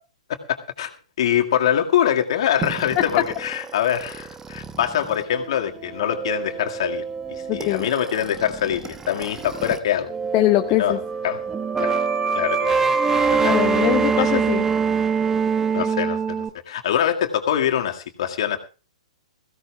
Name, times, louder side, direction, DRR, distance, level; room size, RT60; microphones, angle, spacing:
voice 1, 0.5-0.9 1.2-10.1 10.8-11.0 11.2-11.4 11.8-12.0 12.3-13.5 14.2-14.4 15.7-18.6, left 10 dB, 55° left, 4 dB, 2.0 m, -24 dB
sound 1, 2.6-9.8 10.1-16.5, right 5 dB, 15° right, 1.0 m, -25 dB
voice 2, 7.5-7.9 10.3-11.0 13.4-14.6, left 16 dB, 30° left, 7 dB, 0.8 m, -22 dB
21.0 x 16.0 x 2.4 m, 0.33 s
figure-of-eight pair, 115°, 4 cm